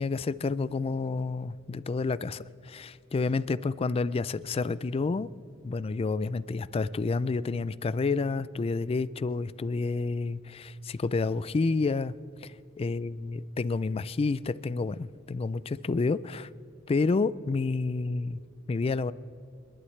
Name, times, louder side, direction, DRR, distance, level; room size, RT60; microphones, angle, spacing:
voice 1, 0.0-5.3 5.6-12.1 12.8-16.5 16.9-18.4 18.7-19.1, left 3 dB, 30° left, 17 dB, 0.3 m, -29 dB
28.5 x 11.5 x 3.2 m, 2.8 s
head